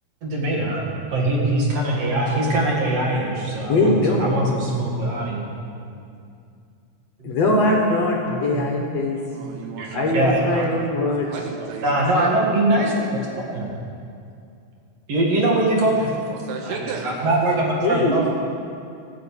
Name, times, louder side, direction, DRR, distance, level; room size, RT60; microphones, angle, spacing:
voice 1, 0.2-5.4 5.9-6.0 7.2-7.3 8.2-9.0 9.8-10.4 11.8-13.2 13.5-13.7 15.1-16.1 16.7-18.3, right 1 dB, 50° right, -2 dB, 2.5 m, -22 dB
voice 2, 3.7-4.3 7.2-9.2 9.9-11.3 17.8-18.3, left 2 dB, 60° left, 0 dB, 1.8 m, -21 dB
voice 3, 9.3-12.3 16.3-17.1, right 5 dB, 85° right, 3 dB, 3.3 m, -34 dB
14.0 x 8.0 x 8.6 m, 2.4 s
omnidirectional pair, 4.5 m